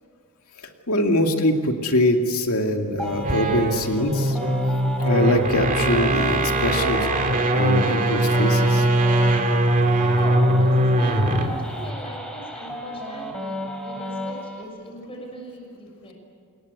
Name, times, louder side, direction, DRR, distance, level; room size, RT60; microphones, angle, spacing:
voice 1, 0.9-4.4 5.0-7.1 7.5-8.8, left 1 dB, 75° left, 4 dB, 2.6 m, -23 dB
sound 1, 3.0-14.6, equal, 5° left, 3.7 m, -34 dB
sound 2, 3.1-11.6, right 1 dB, 35° right, 2.3 m, -21 dB
voice 2, 10.1-16.1, equal, 25° left, 0 dB, 6.7 m, -39 dB
27.0 x 21.5 x 9.5 m, 2.1 s
head